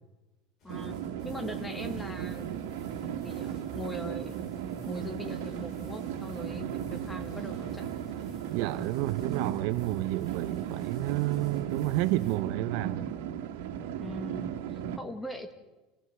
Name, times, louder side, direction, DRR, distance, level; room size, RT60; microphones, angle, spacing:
sound 1, 0.6-12.4, left 3 dB, 35° left, 6.6 m, -57 dB
voice 1, 0.6-1.0 1.2-2.5 3.0-4.4 4.8-7.8 14.0-15.5, left 1 dB, 5° left, 1.8 m, -41 dB
sound 2, 0.7-15.0, right 9 dB, 90° right, 2.0 m, -36 dB
voice 2, 8.5-13.1, right 16 dB, 60° right, 0.8 m, -30 dB
28.5 x 16.5 x 7.9 m
cardioid pair, 165°, 0 cm